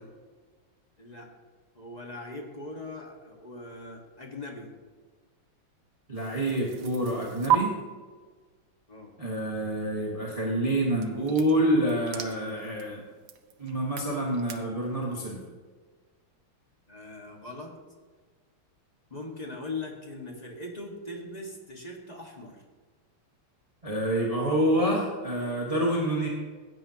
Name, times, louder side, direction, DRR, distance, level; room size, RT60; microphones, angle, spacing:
voice 1, 1.0-1.3 1.7-4.7 8.9-9.1 16.9-17.8 19.1-22.6, left 2 dB, 20° left, 0 dB, 1.5 m, -40 dB
voice 2, 6.1-7.7 9.2-13.0 13.6-15.4 23.8-26.3, right 1 dB, 20° right, -4 dB, 1.6 m, -27 dB
sound 1, 6.1-7.6 10.9-14.6, right 13 dB, 65° right, 0.9 m, -34 dB
15.5 x 9.0 x 2.9 m, 1.4 s
omnidirectional pair, 2.3 m